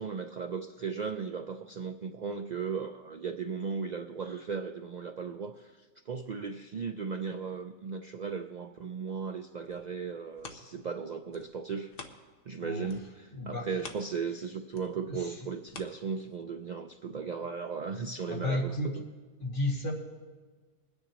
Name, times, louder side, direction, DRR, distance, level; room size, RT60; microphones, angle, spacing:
voice 1, 0.0-11.9 12.5-19.0, right 5 dB, 80° right, 6 dB, 0.4 m, -36 dB
sound 1, 9.4-12.6 12.8-16.7 17.2-17.3, left 4 dB, 45° left, 1.0 m, -50 dB
voice 2, 13.3-13.7 15.1-15.3 18.3-18.9 19.4-19.9, left 1 dB, 65° left, -4 dB, 2.4 m, -32 dB
22.0 x 9.9 x 3.0 m, 1.4 s
omnidirectional pair, 1.4 m